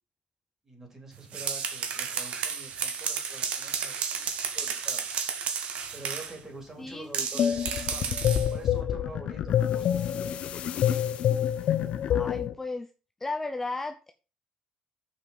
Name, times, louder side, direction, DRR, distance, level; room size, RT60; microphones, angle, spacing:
voice 1, 0.6-5.1 5.9-8.2 8.5-9.9, right 2 dB, 20° right, 1 dB, 3.6 m, -45 dB
sound 1, 1.1-6.4 7.1-8.5, right 7 dB, 65° right, 1.5 m, -32 dB
voice 2, 6.8-7.1 7.3-7.5 11.6-11.8 12.1-12.9 13.2-14.1, left 3 dB, 15° left, 7 dB, 0.6 m, -35 dB
sound 2, 7.4-12.5, left 9 dB, 65° left, 0.8 m, -27 dB
6.9 x 5.7 x 5.8 m, 0.33 s
cardioid pair, 125°, 2 cm